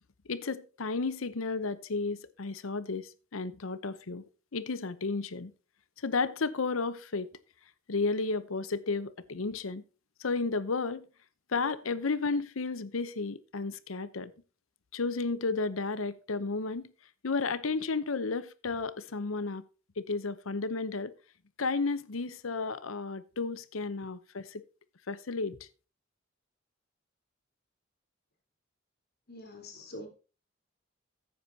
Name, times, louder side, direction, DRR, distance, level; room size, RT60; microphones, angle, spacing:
voice 1, 0.3-4.2 4.5-5.5 6.0-7.3 7.9-9.8 10.2-11.1 11.5-14.3 14.9-16.9 17.2-19.6 20.0-21.1 21.6-24.6 25.1-25.7, left 4 dB, 90° left, 0.8 m, -33 dB
voice 2, 29.3-30.1, left 1 dB, 55° left, 3.7 m, -44 dB
14.0 x 9.7 x 2.8 m
head